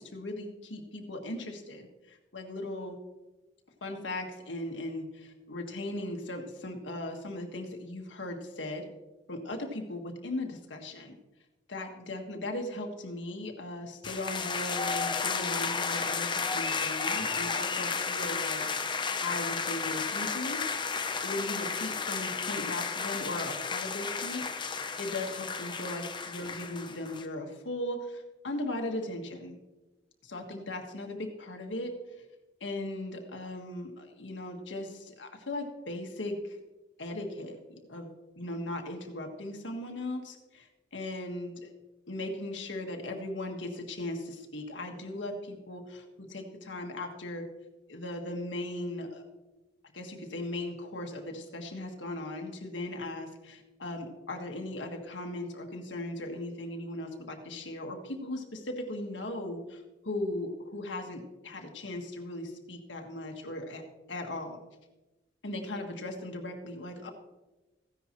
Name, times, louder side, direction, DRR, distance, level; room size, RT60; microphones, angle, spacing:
voice 1, 0.0-3.0 3.8-8.9 9.3-11.2 11.7-20.6 21.2-29.6 30.2-31.9 32.6-36.6 37.0-41.7 42.1-47.5 47.9-49.2 49.9-63.8 64.1-64.6 65.4-67.1, left 1 dB, 85° left, 3 dB, 1.6 m, -38 dB
sound 1, 14.0-27.3, left 5 dB, 25° left, 0.7 m, -33 dB
15.0 x 10.0 x 3.1 m, 1.1 s
head